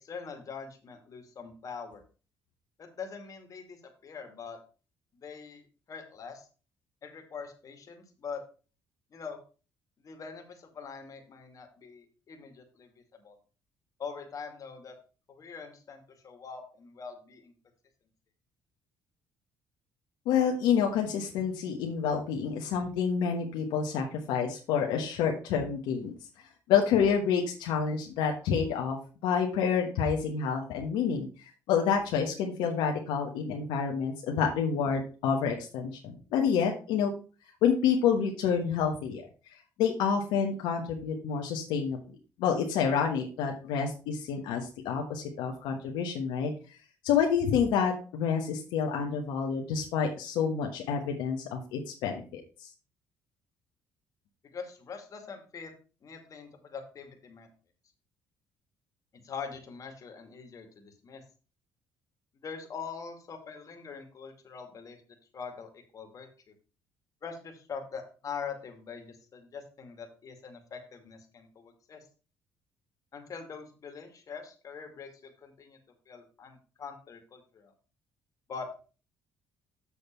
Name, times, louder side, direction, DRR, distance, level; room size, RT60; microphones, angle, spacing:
voice 1, 0.0-2.0 2.8-3.8 4.0-4.6 5.2-5.6 5.9-6.5 7.0-8.4 9.1-9.4 10.0-12.9 13.2-13.4 14.0-14.9 15.3-17.5 54.5-55.7 56.0-57.5 59.1-61.2 62.4-65.0 65.3-66.3 67.2-72.0 73.1-75.8 76.1-77.7 78.5-78.7, left 5 dB, 50° left, 5 dB, 2.2 m, -43 dB
voice 2, 20.2-26.1 26.7-29.0 29.2-31.3 31.7-37.1 37.6-39.3 39.8-42.0 42.4-46.5 47.0-52.4, left 7 dB, 85° left, 1 dB, 1.3 m, -28 dB
7.3 x 6.4 x 4.5 m, 0.35 s
supercardioid pair, 75°, 8 cm